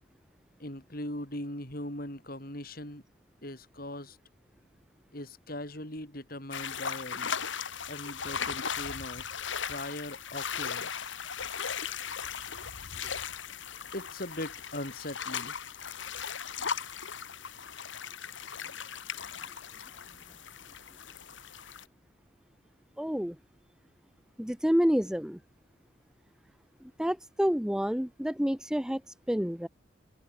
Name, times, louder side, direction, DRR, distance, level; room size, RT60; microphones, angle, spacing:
voice 1, 0.6-3.0 3.4-4.2 5.1-7.3 7.9-9.3 9.7-11.1 12.9-13.1 13.9-15.5, left 1 dB, 45° left, 6.1 m, -40 dB
sound 1, 6.5-21.9, left 7 dB, 70° left, 1.9 m, -38 dB
voice 2, 23.0-23.4 24.4-25.4 27.0-29.7, equal, 5° right, 0.6 m, -28 dB
head